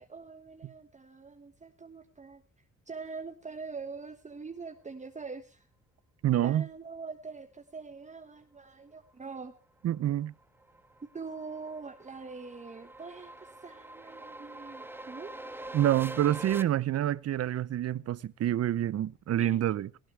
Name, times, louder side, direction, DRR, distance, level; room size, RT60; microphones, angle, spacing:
voice 1, 0.0-2.4 2.9-5.7 6.4-9.5 11.1-15.3 19.4-19.6, right 4 dB, 25° right, 1.3 m, -43 dB
voice 2, 6.2-6.7 9.8-10.3 15.7-19.9, right 12 dB, 55° right, 0.7 m, -27 dB
sound 1, 10.2-16.6, right 2 dB, 5° right, 1.0 m, -45 dB
18.0 x 15.0 x 3.3 m
cardioid pair, 90°, 30 cm